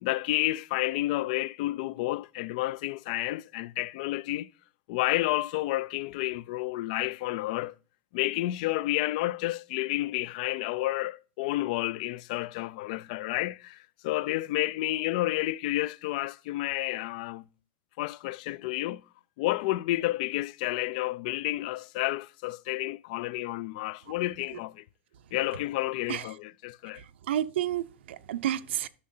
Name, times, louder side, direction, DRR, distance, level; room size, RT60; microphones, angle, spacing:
voice 1, 0.0-4.5 4.9-7.8 8.1-17.4 18.0-19.0 19.4-24.8 25.3-27.0, left 17 dB, 40° left, 0.3 m, -30 dB
voice 2, 26.9-28.9, right 11 dB, 75° right, 0.7 m, -31 dB
12.5 x 6.5 x 2.7 m
supercardioid pair, 165°, 6 cm